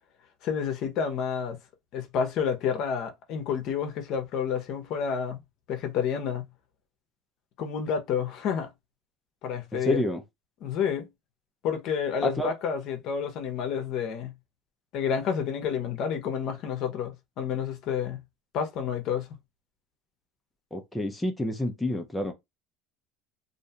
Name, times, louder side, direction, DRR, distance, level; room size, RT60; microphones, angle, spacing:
voice 1, 0.4-1.6 1.9-5.4 5.7-6.4 7.6-8.7 9.4-10.0 10.6-11.1 11.6-14.3 14.9-18.2 18.5-19.3, left 7 dB, 50° left, 0.6 m, -29 dB
voice 2, 9.8-10.2 12.2-12.5 20.7-22.3, left 1 dB, 5° left, 0.4 m, -28 dB
2.5 x 2.2 x 2.7 m
cardioid pair, 140°, 0 cm